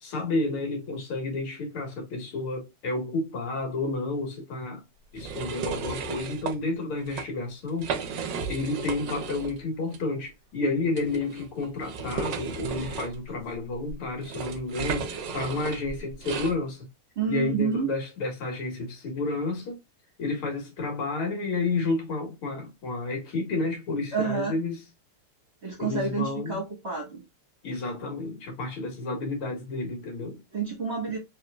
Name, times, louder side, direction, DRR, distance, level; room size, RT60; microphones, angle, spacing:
voice 1, 0.0-4.8 5.1-8.0 8.5-16.9 17.3-19.8 20.2-24.8 25.8-26.6 27.6-30.4, left 3 dB, 75° left, 2.5 m, -31 dB
sound 1, 5.2-6.6 7.0-7.3 7.7-9.6 9.9-10.0 10.9-16.6, right 5 dB, 65° right, 1.2 m, -34 dB
voice 2, 17.1-17.9 24.1-24.6 25.6-27.2 30.5-31.2, right 5 dB, 35° right, 1.2 m, -29 dB
4.6 x 3.3 x 2.2 m
omnidirectional pair, 2.4 m